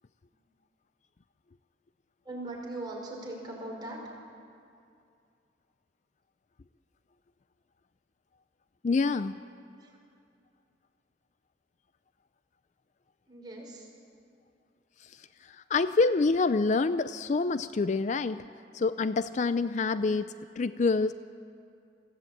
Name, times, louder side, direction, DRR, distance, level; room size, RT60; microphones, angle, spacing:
voice 1, 2.2-4.1 9.8-10.0 13.3-13.9, right 2 dB, 25° right, -3 dB, 5.3 m, -40 dB
voice 2, 8.8-9.4 15.5-18.4 18.7-21.1, left 3 dB, 40° left, 13 dB, 0.4 m, -27 dB
23.0 x 15.5 x 8.7 m, 2.4 s
head